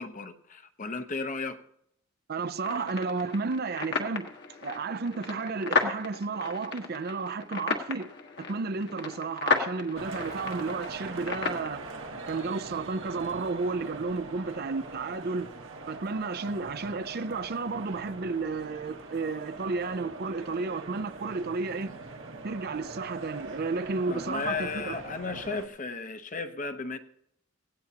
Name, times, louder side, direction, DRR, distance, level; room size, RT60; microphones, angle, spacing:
voice 1, 0.0-1.6 24.1-27.0, left 4 dB, 40° left, 0.9 m, -34 dB
voice 2, 2.3-4.3 4.6-8.1 8.4-11.9 12.3-15.5 15.9-21.9 22.4-25.0, right 4 dB, 50° right, 0.5 m, -32 dB
sound 1, 2.6-11.7, left 4 dB, 55° left, 1.5 m, -33 dB
sound 2, 10.0-25.7, right 3 dB, 65° right, 1.4 m, -42 dB
17.5 x 17.0 x 2.9 m
head